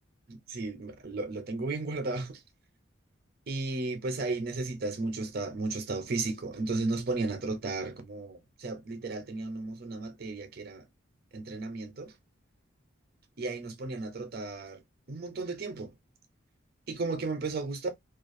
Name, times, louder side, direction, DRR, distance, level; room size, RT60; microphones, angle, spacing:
voice 1, 0.3-2.4 3.5-10.8 11.3-12.1 13.4-14.8 15.1-15.9 16.9-17.9, right 3 dB, 50° right, 0.6 m, -34 dB
2.4 x 2.3 x 2.5 m
head